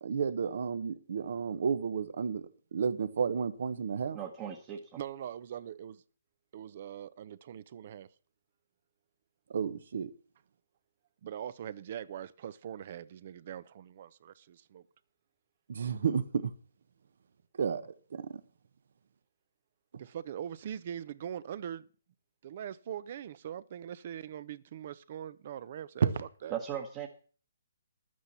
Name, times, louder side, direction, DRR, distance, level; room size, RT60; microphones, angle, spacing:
voice 1, 0.0-4.2 9.5-10.1 15.7-16.5 17.6-18.4 26.0-26.1, right 6 dB, 60° right, 1.1 m, -32 dB
voice 2, 4.1-5.0 26.5-27.1, right 9 dB, 20° right, 1.3 m, -38 dB
voice 3, 5.0-6.0 6.5-8.1 11.2-14.8 20.0-21.9 22.4-26.6, right 9 dB, 45° right, 0.7 m, -42 dB
12.0 x 9.3 x 5.7 m
hypercardioid pair, 155°, 0 cm